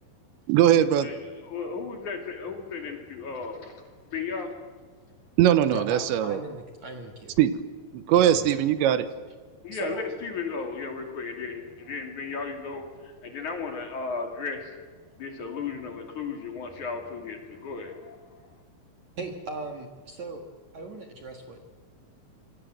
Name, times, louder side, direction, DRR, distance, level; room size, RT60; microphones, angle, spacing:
voice 1, 0.5-1.1 5.4-6.4 7.4-7.6 7.9-9.1, right 11 dB, 80° right, 12 dB, 3.2 m, -20 dB
voice 2, 1.5-3.8 4.1-4.5 9.6-12.8 13.2-14.7 15.2-18.3, left 4 dB, 45° left, 4 dB, 3.5 m, -35 dB
voice 3, 5.7-7.3 8.1-8.5 9.7-10.0 19.2-20.4 20.7-21.6, right 3 dB, 55° right, 4 dB, 2.3 m, -38 dB
26.0 x 25.5 x 7.7 m, 1.5 s
omnidirectional pair, 5.4 m